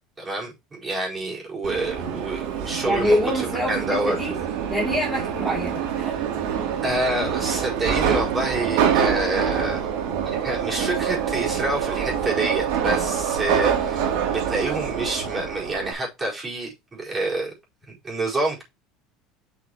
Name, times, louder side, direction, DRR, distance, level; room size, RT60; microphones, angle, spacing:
voice 1, 0.2-4.2 6.2-6.3 6.8-9.9 10.3-17.5 17.9-18.6, right 2 dB, 15° right, 4.6 m, -28 dB
Subway metro underground, 1.6-15.9, right 8 dB, 75° right, 2.8 m, -26 dB
voice 2, 2.8-4.3 4.7-6.1, equal, 5° left, 2.9 m, -25 dB
8.6 x 6.1 x 3.0 m
cardioid pair, 150°, 0 cm